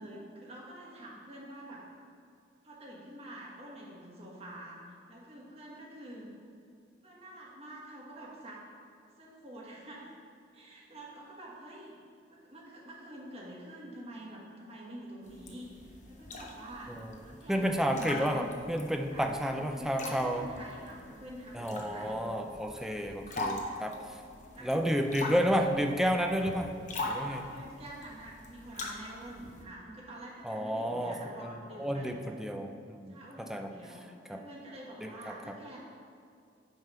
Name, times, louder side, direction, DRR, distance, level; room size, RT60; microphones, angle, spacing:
voice 1, 0.0-1.8 2.6-6.3 7.0-8.6 9.2-10.1 10.5-12.0 12.3-16.9 17.2-18.5 19.1-22.2 23.6-23.9 24.5-25.2 27.1-32.3 33.1-35.8, right 1 dB, 35° right, -4 dB, 1.4 m, -47 dB
sound 1, 15.2-29.6, left 2 dB, 45° left, 0.9 m, -42 dB
voice 2, 17.5-20.4 21.5-24.0 24.6-26.7 27.0-27.4 30.4-31.5 31.8-33.7 34.3-34.4 35.0-35.3, equal, 5° right, 4 dB, 0.4 m, -31 dB
9.1 x 3.5 x 5.5 m, 2.4 s
head